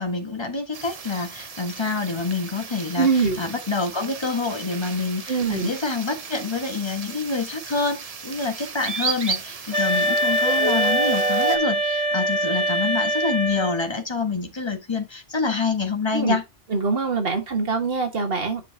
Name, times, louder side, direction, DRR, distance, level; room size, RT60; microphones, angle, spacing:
voice 1, 0.0-3.1 3.4-16.4, left 4 dB, 25° left, 1.4 m, -27 dB
sound 1, 0.7-11.6, right 4 dB, 40° right, 0.7 m, -32 dB
voice 2, 3.0-3.4 5.3-5.7 16.1-16.4 16.7-18.6, right 4 dB, 60° right, 1.7 m, -23 dB
sound 2, 9.7-13.9, equal, 85° right, 2.3 m, -23 dB
7.8 x 5.9 x 2.8 m
omnidirectional pair, 1.1 m